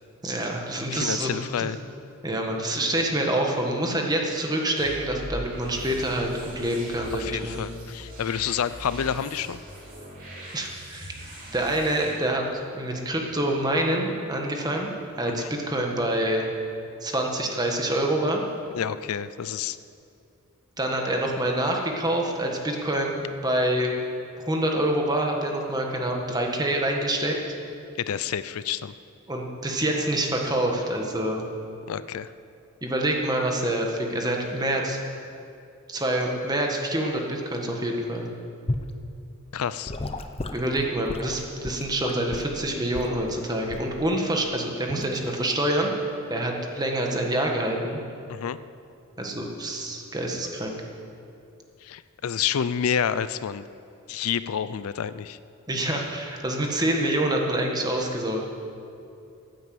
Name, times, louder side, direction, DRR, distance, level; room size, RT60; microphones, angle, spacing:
voice 1, 0.2-1.7 2.2-7.6 10.5-11.1 11.5-14.9 15.2-16.5 17.0-18.4 20.8-23.9 24.4-27.3 29.3-31.5 32.8-35.0 35.9-38.3 40.5-45.9 46.3-48.0 49.2-50.8 55.7-58.5, right 1 dB, 20° right, 1 dB, 1.6 m, -26 dB
voice 2, 0.9-1.8 7.2-9.6 15.3-15.5 18.7-19.8 28.0-28.9 31.9-32.3 39.5-39.9 48.3-48.6 51.8-53.6 54.1-55.4, left 8 dB, 75° left, 15 dB, 0.4 m, -29 dB
sound 1, 4.8-12.1, equal, 40° right, 3.3 m, -40 dB
Gurgling / Sink (filling or washing) / Liquid, 38.7-38.9 39.9-42.6 42.9-43.2 43.7-44.0 44.9-45.1, left 2 dB, 25° left, 0.7 m, -33 dB
14.0 x 9.4 x 7.8 m, 2.5 s
head